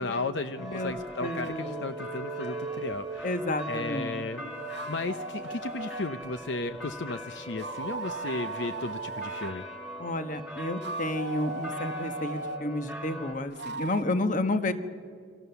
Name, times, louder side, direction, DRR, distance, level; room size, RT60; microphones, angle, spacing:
voice 1, 0.0-3.4 3.7-4.4 4.9-9.7, left 3 dB, 65° left, 10 dB, 0.7 m, -34 dB
voice 2, 0.6-0.9 1.2-1.8 3.2-4.2 10.0-14.7, left 1 dB, 40° left, 9 dB, 1.2 m, -31 dB
sound 1, 0.6-13.3, equal, 5° right, 2.1 m, -41 dB
sound 2, 1.4-3.3 4.3-6.1 7.5-9.5 10.6-12.6 13.5-14.0, right 3 dB, 55° right, 0.9 m, -38 dB
sound 3, 4.4-7.2 7.5-10.4 11.0-14.0, right 1 dB, 80° left, 7.2 m, -52 dB
29.0 x 25.0 x 7.0 m, 2.2 s
head